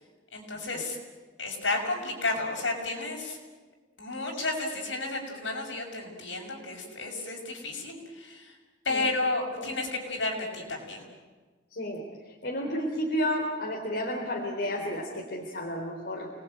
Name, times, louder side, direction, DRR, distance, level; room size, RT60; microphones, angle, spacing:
voice 1, 0.3-1.0 1.4-3.4 4.0-8.5 8.8-11.0, left 2 dB, 85° left, 1 dB, 6.6 m, -32 dB
voice 2, 11.7-16.3, equal, 65° left, -1 dB, 3.6 m, -32 dB
29.0 x 20.0 x 9.1 m, 1.4 s
head